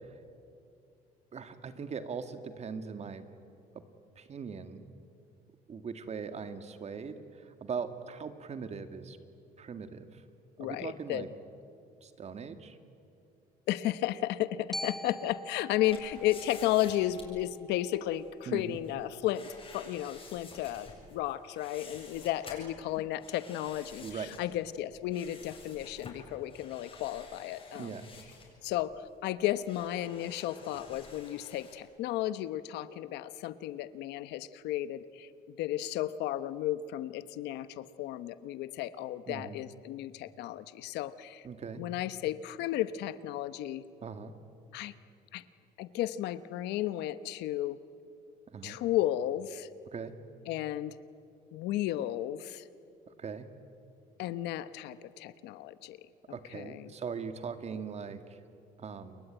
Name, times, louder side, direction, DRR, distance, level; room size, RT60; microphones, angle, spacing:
voice 1, 1.3-3.2 3.7-3.8 4.2-4.8 5.7-9.2 9.6-10.2 10.6-11.3 12.0-12.8 18.5-18.8 24.0-24.3 27.7-28.1 39.3-39.6 41.4-41.8 44.0-44.3 48.5-48.8 49.9-50.1 53.2-53.5 56.3-58.2 58.8-59.2, right 6 dB, 40° right, 9 dB, 2.1 m, -40 dB
voice 2, 10.6-11.3 13.7-27.9 28.6-41.5 41.8-43.8 44.7-44.9 45.3-45.4 45.8-47.8 48.6-49.7 50.5-51.0 51.5-52.6 54.2-56.9, left 13 dB, 85° left, 14 dB, 1.0 m, -34 dB
Glockenspiel, 14.7-18.8, equal, ahead, 1.1 m, -44 dB
sound 1, 15.9-31.8, left 4 dB, 35° left, 7.9 m, -52 dB
29.0 x 22.0 x 9.2 m, 2.5 s
cardioid pair, 110°, 17 cm